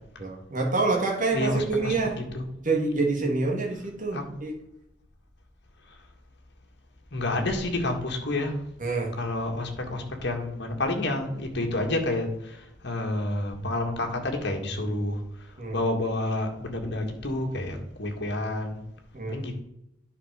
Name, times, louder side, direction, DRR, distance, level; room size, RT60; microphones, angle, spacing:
voice 1, 0.2-2.2 2.6-4.6 8.8-9.1 15.6-15.8 19.1-19.4, right 3 dB, 45° right, 0 dB, 2.4 m, -27 dB
voice 2, 1.3-1.9 2.3-2.5 4.1-4.2 7.1-8.6 9.2-15.5 15.7-18.8 19.3-19.6, left 2 dB, 65° left, 2 dB, 1.9 m, -29 dB
9.9 x 6.0 x 5.1 m, 0.81 s
head